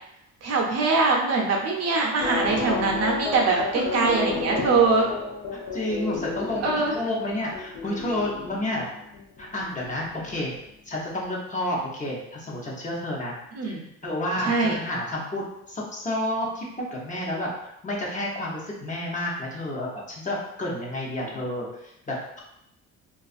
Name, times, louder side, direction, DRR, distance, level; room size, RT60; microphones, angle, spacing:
voice 1, 0.4-5.1 6.6-6.9 13.5-13.8 14.4-14.8, right 4 dB, 55° right, 0 dB, 0.6 m, -23 dB
sound 1, 2.2-10.7 11.0-11.1, left 4 dB, 75° left, 0.7 m, -33 dB
voice 2, 3.5-4.8 5.5-8.9 9.4-10.5 10.9-13.3 13.6-22.4, left 1 dB, 25° left, -4 dB, 0.7 m, -30 dB
2.4 x 2.4 x 2.4 m, 0.79 s
cardioid pair, 90°, 30 cm